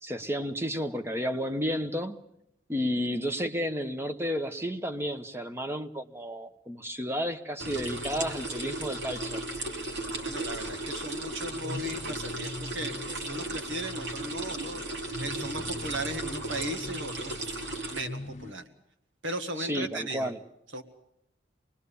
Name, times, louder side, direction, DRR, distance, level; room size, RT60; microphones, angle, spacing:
voice 1, 0.0-2.2 2.7-9.4 19.6-20.4, equal, 15° right, 8 dB, 1.0 m, -32 dB
sound 1, 7.6-18.5, left 2 dB, 35° left, 0.8 m, -44 dB
sound 2, 7.6-18.0, right 2 dB, 65° right, 2.9 m, -36 dB
voice 2, 10.2-17.5 17.9-18.6 19.2-20.3 20.7-20.8, right 1 dB, 85° right, 6 dB, 1.8 m, -37 dB
25.5 x 20.5 x 7.0 m, 0.82 s
head